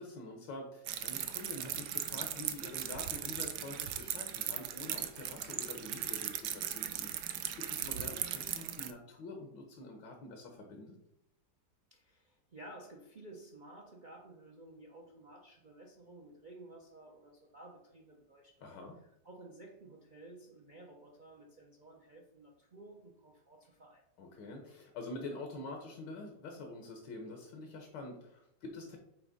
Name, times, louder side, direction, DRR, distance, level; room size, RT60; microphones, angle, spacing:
voice 1, 0.0-10.9 18.6-19.0 24.2-29.0, left 2 dB, 75° left, 2 dB, 1.6 m, -46 dB
sound 1, 0.9-8.9, right 10 dB, 70° right, 1.1 m, -38 dB
voice 2, 11.9-18.6 19.0-24.1, right 2 dB, 50° right, 1 dB, 0.5 m, -54 dB
8.1 x 3.1 x 5.1 m, 0.80 s
omnidirectional pair, 2.0 m